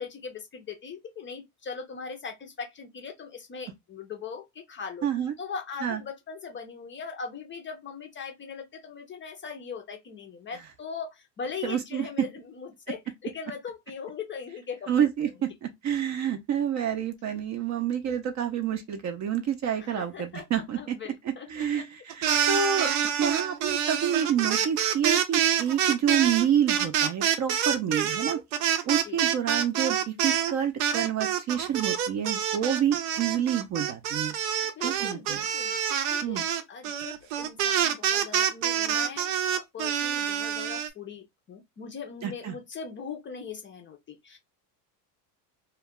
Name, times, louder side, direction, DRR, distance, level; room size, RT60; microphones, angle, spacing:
voice 1, 0.0-5.1 5.4-14.9 19.8-20.5 20.7-21.8 22.3-22.5 29.0-29.2 34.6-35.7 36.1-36.4 36.7-44.4, left 6 dB, 25° left, 0.5 m, -40 dB
voice 2, 5.0-5.3 5.8-6.0 11.6-12.1 14.9-21.0 21.2-22.9 23.2-28.4 28.8-34.3 34.8-35.4 36.2-36.4 42.2-42.5, right 9 dB, 35° right, 0.5 m, -28 dB
sound 1, 22.1-30.5 30.8-40.9, right 9 dB, 70° right, 0.7 m, -26 dB
2.2 x 2.2 x 3.5 m
supercardioid pair, 105°, 50 cm